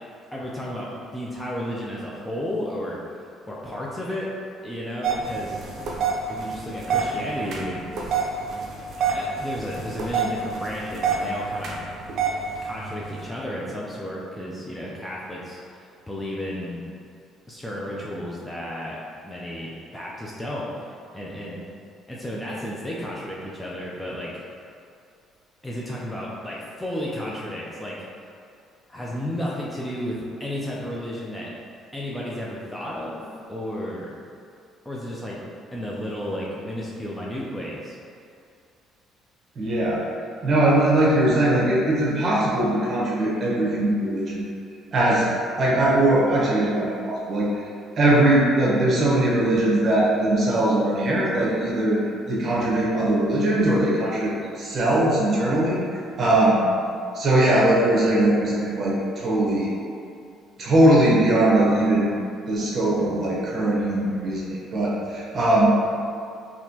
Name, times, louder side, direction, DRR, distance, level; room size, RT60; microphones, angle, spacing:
voice 1, 0.3-3.0 3.4-4.3 4.6-5.6 6.3-8.3 9.1-11.8 12.6-16.8 17.5-19.0 19.2-21.6 22.1-24.5 25.6-28.0 28.9-31.5 31.9-33.2 33.5-34.1 34.8-35.4 35.7-38.0, equal, 10° left, -5 dB, 0.5 m, -33 dB
sound 1, 5.0-13.3, right 5 dB, 55° right, 0.5 m, -28 dB
voice 2, 39.6-40.1 40.4-44.5 44.9-45.3 45.6-47.6 48.0-52.0 52.3-56.7 57.1-59.7 60.6-62.2 62.5-65.7, right 1 dB, 40° right, -5 dB, 1.0 m, -20 dB
4.1 x 2.9 x 2.8 m, 2.4 s
cardioid pair, 115°, 0 cm